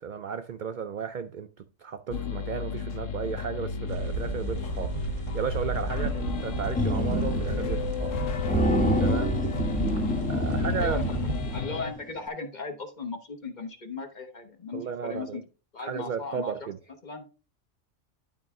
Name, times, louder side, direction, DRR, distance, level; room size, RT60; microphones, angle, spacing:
voice 1, 0.0-8.1 9.0-9.5 10.3-11.1 14.7-15.4 15.8-16.8, right 7 dB, 60° right, 0.5 m, -34 dB
sound 1, 2.1-11.9, left 6 dB, 85° left, 1.3 m, -32 dB
sound 2, 3.9-11.6, right 5 dB, 85° right, 1.5 m, -34 dB
sound 3, 6.8-7.8 8.0-8.1 8.4-11.8, right 1 dB, 10° left, 0.8 m, -28 dB
voice 2, 10.8-15.4 15.7-16.7 17.0-17.2, left 4 dB, 40° left, 1.1 m, -37 dB
11.5 x 4.5 x 3.6 m
omnidirectional pair, 1.3 m